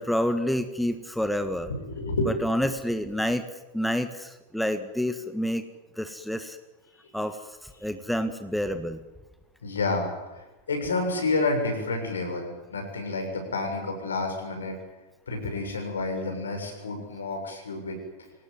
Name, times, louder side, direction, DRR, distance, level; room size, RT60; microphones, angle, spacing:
voice 1, 0.0-1.7 2.2-3.5 3.7-5.6 6.0-6.6 7.1-9.0, equal, ahead, 9 dB, 1.6 m, -28 dB
voice 2, 1.7-2.3 9.6-14.8 15.3-18.0, left 3 dB, 70° left, 4 dB, 7.1 m, -29 dB
25.5 x 18.5 x 9.6 m, 1.1 s
figure-of-eight pair, 90°, 0 cm